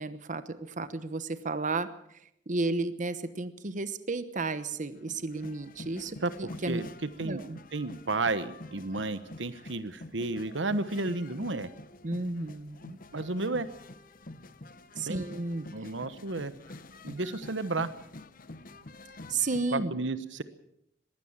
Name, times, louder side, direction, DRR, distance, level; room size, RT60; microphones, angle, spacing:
voice 1, 0.0-1.9 2.5-6.8 7.2-7.6 12.0-13.0 15.0-15.7 19.3-19.9, right 3 dB, 45° right, 12 dB, 1.1 m, -33 dB
sound 1, 4.5-19.7, left 2 dB, 50° left, 1.0 m, -48 dB
voice 2, 7.7-11.7 13.1-13.7 15.0-15.2 15.7-16.5 17.0-17.9 19.7-20.4, right 2 dB, 90° right, 13 dB, 1.2 m, -32 dB
21.5 x 16.5 x 7.4 m, 0.76 s
head